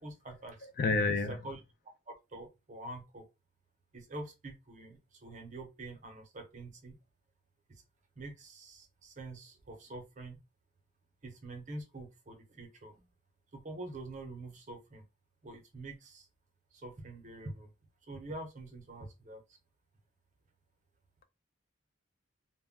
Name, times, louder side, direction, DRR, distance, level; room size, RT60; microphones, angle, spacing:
voice 1, 0.0-0.7 1.3-1.6 2.1-3.3 3.9-6.9 7.7-7.8 8.2-10.4 11.2-13.0 13.5-15.0 15.4-16.3 16.7-17.7 18.1-19.6, right 2 dB, 35° right, 0.6 m, -46 dB
voice 2, 0.6-1.4, left 3 dB, 45° left, 0.4 m, -29 dB
2.1 x 2.1 x 3.5 m
head